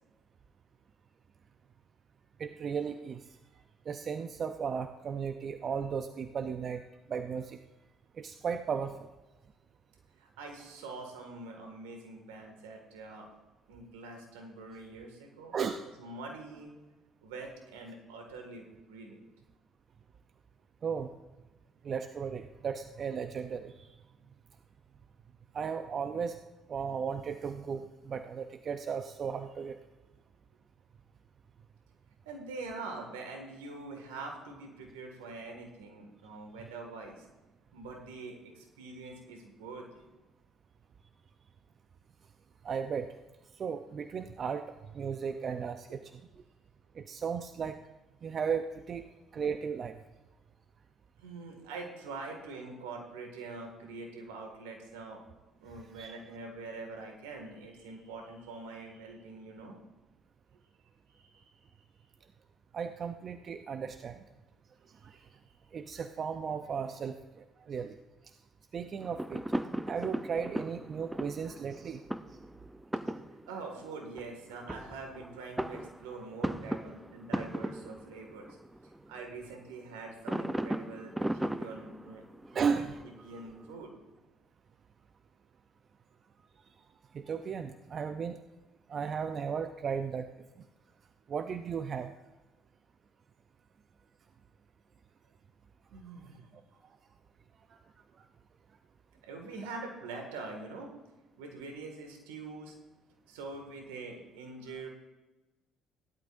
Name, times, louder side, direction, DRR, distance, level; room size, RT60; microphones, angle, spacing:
voice 1, 2.4-3.2 3.9-6.8 7.1-7.6 8.2-9.1 15.5-15.8 20.8-21.1 21.8-23.9 25.5-26.4 26.7-29.8 42.6-43.1 43.6-44.7 44.9-46.4 46.9-47.8 48.2-50.0 55.9-56.1 62.7-64.2 65.0-65.2 65.7-68.0 68.7-69.4 69.9-72.0 81.0-81.1 82.5-83.4 87.1-88.4 88.9-90.3 91.3-92.1, right 6 dB, 50° right, 8 dB, 0.6 m, -35 dB
voice 2, 10.2-13.3 13.7-15.5 16.0-16.7 17.2-19.3 32.3-37.3 37.7-40.0 45.9-46.0 51.2-55.2 55.6-59.8 61.1-61.5 65.2-65.3 73.5-78.6 79.1-82.2 82.5-82.7 83.0-83.9 95.9-96.6 99.2-100.9 101.4-102.7 103.3-104.9, right 3 dB, 85° right, 2 dB, 2.1 m, -44 dB
sound 1, 69.0-79.4 80.3-83.9, right 1 dB, 10° right, 0.6 m, -37 dB
17.0 x 11.5 x 2.6 m, 1.1 s
hypercardioid pair, 55°, 0 cm